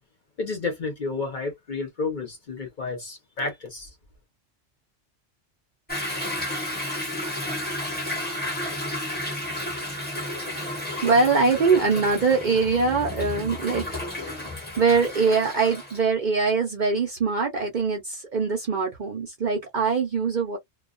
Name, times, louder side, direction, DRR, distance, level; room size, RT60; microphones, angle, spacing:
voice 1, 0.4-3.9, left 3 dB, 45° left, 0.8 m, -31 dB
Toilet flush / Drip / Trickle dribble, 5.9-16.0, left 1 dB, 10° left, 0.7 m, -32 dB
voice 2, 10.7-13.9 14.1-14.4 14.8-20.6, right 4 dB, 50° right, 0.6 m, -23 dB
2.3 x 2.2 x 2.4 m
omnidirectional pair, 1.3 m